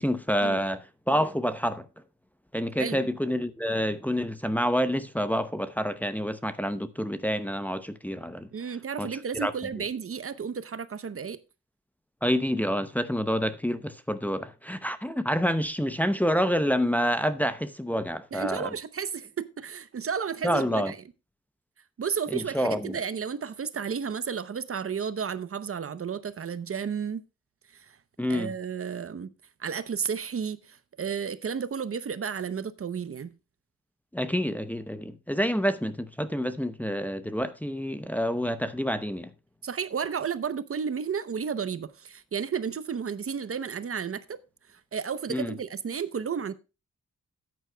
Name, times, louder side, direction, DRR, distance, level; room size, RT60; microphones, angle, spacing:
voice 1, 0.0-1.9 2.5-8.5 9.0-9.1 9.4-9.5 12.2-18.7 20.4-20.9 22.3-23.0 28.2-28.5 34.1-39.3 45.3-45.5, equal, 5° left, 0.7 m, -28 dB
voice 2, 2.8-3.1 8.5-11.4 18.3-21.0 22.0-27.2 27.7-28.0 28.3-29.3 29.6-33.3 39.6-44.4 44.7-46.5, right 6 dB, 45° right, 0.7 m, -32 dB
14.0 x 9.2 x 2.2 m
wide cardioid pair, 135°, 30 cm